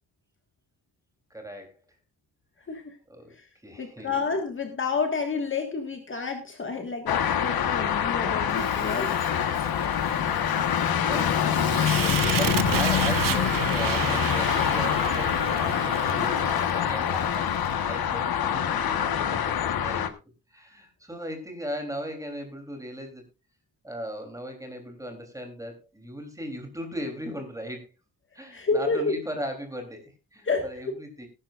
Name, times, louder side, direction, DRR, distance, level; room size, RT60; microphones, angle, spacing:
voice 1, 1.3-1.8 3.1-4.2 10.4-17.6 17.8-20.1 20.5-23.2 23.8-27.9 28.3-31.3, equal, 10° right, 3.3 m, -38 dB
voice 2, 3.8-9.1 9.5-9.8 28.5-29.1 30.4-30.6, left 4 dB, 30° left, 1.7 m, -29 dB
sound 1, 7.1-20.1, left 8 dB, 70° left, 1.4 m, -25 dB
Fire, 8.5-17.7, right 10 dB, 60° right, 0.9 m, -33 dB
19.0 x 11.0 x 2.5 m
wide cardioid pair, 175°, 37 cm